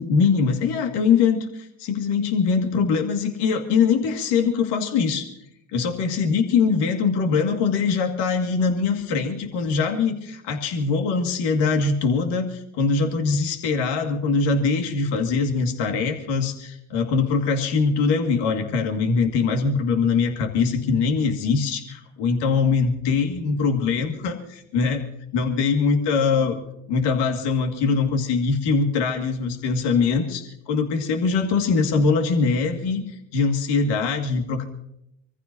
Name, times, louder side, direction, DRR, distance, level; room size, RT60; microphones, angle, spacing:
voice 1, 0.0-5.3 5.7-25.0 25.3-26.6 26.9-33.0 33.3-34.7, left 5 dB, 70° left, 4 dB, 2.2 m, -22 dB
25.5 x 14.5 x 2.8 m, 0.78 s
hypercardioid pair, 60°, 42 cm